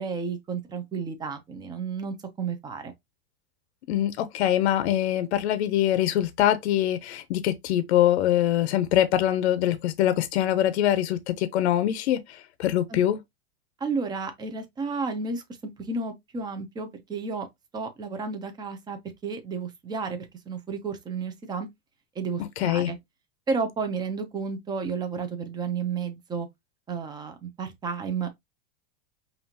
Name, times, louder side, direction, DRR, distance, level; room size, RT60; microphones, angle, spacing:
voice 1, 0.0-2.9 12.9-13.0 13.8-15.4 15.8-17.5 17.7-21.7 22.2-23.0 23.5-26.5 26.9-28.3, right 5 dB, 15° right, 0.7 m, -32 dB
voice 2, 3.9-13.2 22.4-22.9, left 12 dB, 80° left, 0.7 m, -24 dB
5.5 x 2.6 x 2.8 m
supercardioid pair, 155°, 33 cm